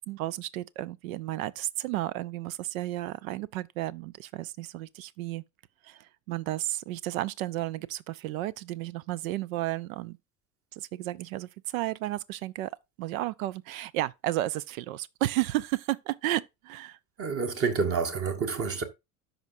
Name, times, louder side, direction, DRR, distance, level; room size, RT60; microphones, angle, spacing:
voice 1, 0.1-5.4 5.8-10.2 10.7-12.7 13.0-17.0 17.6-17.7, right 16 dB, 60° right, 0.5 m, -33 dB
voice 2, 17.2-18.8, right 5 dB, 30° right, 1.2 m, -28 dB
13.0 x 5.0 x 2.6 m
figure-of-eight pair, 75°, 48 cm